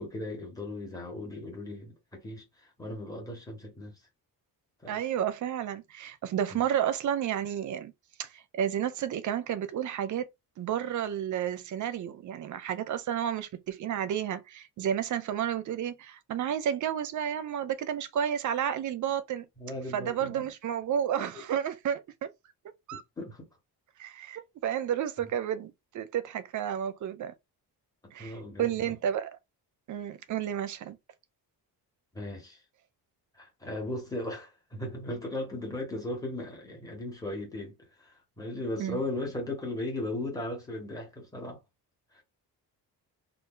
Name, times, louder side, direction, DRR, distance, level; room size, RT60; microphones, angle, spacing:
voice 1, 0.0-3.9 4.8-5.0 6.5-6.6 19.6-20.4 21.3-21.4 22.9-23.5 28.2-29.0 32.1-32.6 33.4-41.6 42.1-42.2, left 1 dB, 10° left, 1.1 m, -37 dB
voice 2, 4.9-7.9 8.2-10.3 10.6-19.5 19.9-22.3 22.9-23.0 24.0-27.3 28.1-29.3 29.9-31.0 38.8-39.0, right 9 dB, 50° right, 0.5 m, -31 dB
2.6 x 2.4 x 3.7 m
wide cardioid pair, 170°, 39 cm